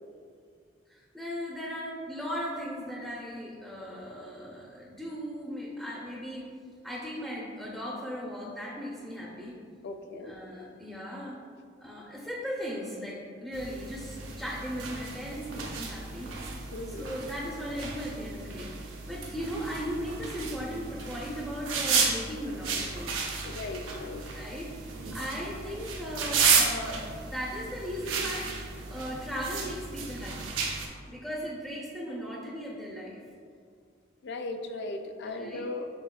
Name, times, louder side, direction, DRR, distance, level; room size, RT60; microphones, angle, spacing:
voice 1, 0.9-6.5 6.8-9.5 10.2-11.4 11.8-16.3 16.9-23.2 24.3-24.7 25.1-28.5 28.9-30.5 31.1-33.2 35.2-35.7, equal, ahead, -5 dB, 0.5 m, -37 dB
voice 2, 9.8-10.3 16.7-17.1 23.4-24.2 34.2-35.9, left 2 dB, 60° left, 6 dB, 0.4 m, -37 dB
sound 1, 13.5-30.9, right 5 dB, 80° right, 0.7 m, -33 dB
6.3 x 3.5 x 2.3 m, 2.1 s
head